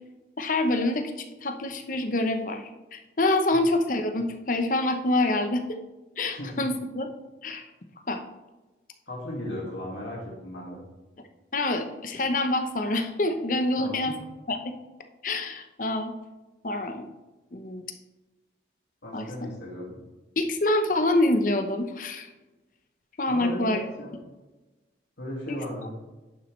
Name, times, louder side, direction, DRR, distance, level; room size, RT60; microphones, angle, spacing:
voice 1, 0.4-1.1 1.4-2.6 2.9-5.8 6.2-7.1 7.4-7.6 8.1-8.2 11.5-14.1 14.5-14.7 15.2-16.1 16.6-17.1 17.5-17.8 19.1-19.2 20.4-22.3 23.2-23.8 25.5-25.6, left 2 dB, 45° left, 7 dB, 0.9 m, -26 dB
voice 2, 9.1-10.8 13.8-14.1 19.0-20.0 23.3-24.2 25.2-25.9, left 1 dB, 85° left, -4 dB, 2.2 m, -36 dB
10.5 x 7.1 x 3.2 m, 1.1 s
head